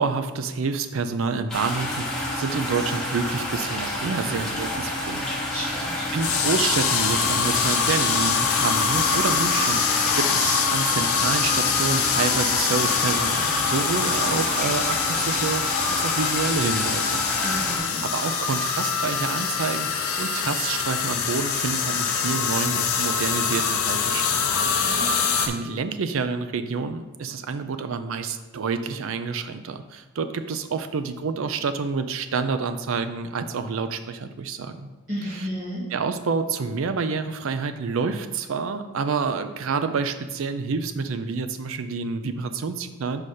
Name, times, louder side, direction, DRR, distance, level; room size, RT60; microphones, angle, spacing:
voice 1, 0.0-5.2 6.1-17.2 18.0-25.2 25.5-34.9 35.4-35.5 35.9-43.2, right 5 dB, 65° right, 9 dB, 0.4 m, -28 dB
sound 1, 1.5-17.8, left 1 dB, 5° left, 1.1 m, -29 dB
voice 2, 5.5-6.1 17.4-18.0 24.8-25.2 35.1-35.8, equal, 40° right, -11 dB, 1.9 m, -32 dB
sound 2, 6.2-25.5, left 6 dB, 80° left, 0.7 m, -24 dB
5.0 x 4.8 x 4.3 m, 1.1 s
head